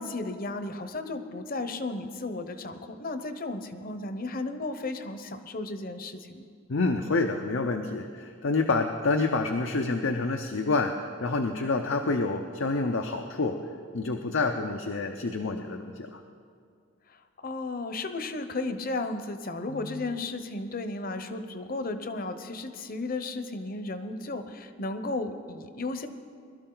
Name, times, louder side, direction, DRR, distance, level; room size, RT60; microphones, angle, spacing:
voice 1, 0.0-6.5 17.4-26.1, left 2 dB, 50° left, 9 dB, 0.8 m, -34 dB
voice 2, 6.7-13.6 13.9-16.2 19.7-20.0, left 3 dB, 80° left, 4 dB, 0.7 m, -28 dB
21.5 x 12.5 x 3.9 m, 2.2 s
head